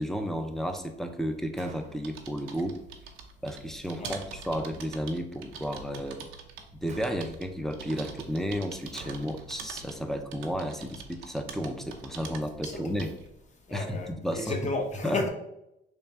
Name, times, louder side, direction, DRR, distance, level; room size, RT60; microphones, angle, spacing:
voice 1, 0.0-2.8 3.4-6.2 6.8-13.1 13.7-14.7 15.0-15.2, equal, ahead, 6 dB, 0.5 m, -32 dB
Gunshot gunfire, 1.6-2.3 6.9-7.6 8.9-9.6, right 3 dB, 35° right, 0.7 m, -49 dB
sound 1, 1.8-13.3, right 5 dB, 85° right, 0.6 m, -45 dB
voice 2, 12.6-13.1 13.7-15.3, left 3 dB, 35° left, 3 dB, 0.9 m, -33 dB
3.4 x 2.4 x 4.1 m, 0.84 s
cardioid pair, 90°, 20 cm